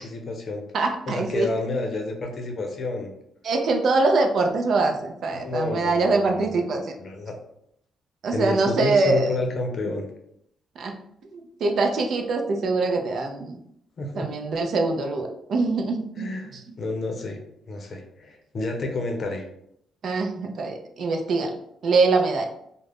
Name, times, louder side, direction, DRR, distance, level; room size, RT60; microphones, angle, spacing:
voice 1, 0.0-0.6 1.1-3.1 5.3-6.6 7.0-7.3 8.3-10.1 14.0-14.3 16.2-17.4 17.7-19.5, left 2 dB, 50° left, 3 dB, 0.6 m, -30 dB
voice 2, 0.7-1.5 3.4-6.9 8.2-9.3 10.8-11.0 11.3-13.6 14.1-16.3 20.0-21.6 21.8-22.5, right 3 dB, 60° right, 3 dB, 0.4 m, -23 dB
2.4 x 2.1 x 3.3 m, 0.74 s
cardioid pair, 90°, 0 cm